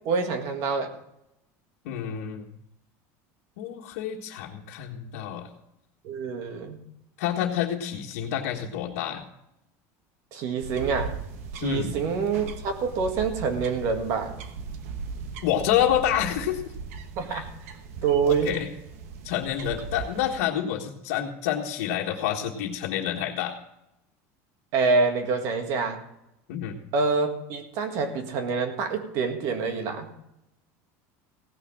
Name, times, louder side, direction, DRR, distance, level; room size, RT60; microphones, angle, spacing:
voice 1, 0.0-0.9 6.0-6.8 10.3-11.2 11.5-14.4 17.2-17.5 18.0-18.6 24.7-26.0 26.9-30.1, right 4 dB, 45° right, 6 dB, 1.7 m, -26 dB
voice 2, 1.8-2.5 3.6-5.5 7.2-9.2 11.6-11.9 15.4-16.6 17.3-17.4 18.3-18.7 19.2-23.6 26.5-26.8, left 10 dB, 85° left, -4 dB, 1.6 m, -28 dB
sound 1, 10.6-20.4, right 5 dB, 85° right, 1.2 m, -38 dB
16.5 x 6.2 x 7.4 m, 0.84 s
cardioid pair, 180°, 8 cm